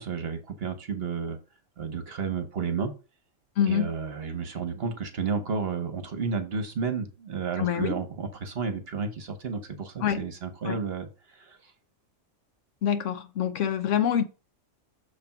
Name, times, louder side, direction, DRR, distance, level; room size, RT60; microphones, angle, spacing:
voice 1, 0.0-1.4 1.8-2.9 3.7-11.7, right 5 dB, 55° right, 1.2 m, -32 dB
voice 2, 3.6-3.9 7.6-8.0 10.0-10.2 10.7-10.8 12.8-14.2, left 9 dB, 70° left, 1.0 m, -26 dB
6.7 x 3.3 x 5.8 m
omnidirectional pair, 1.3 m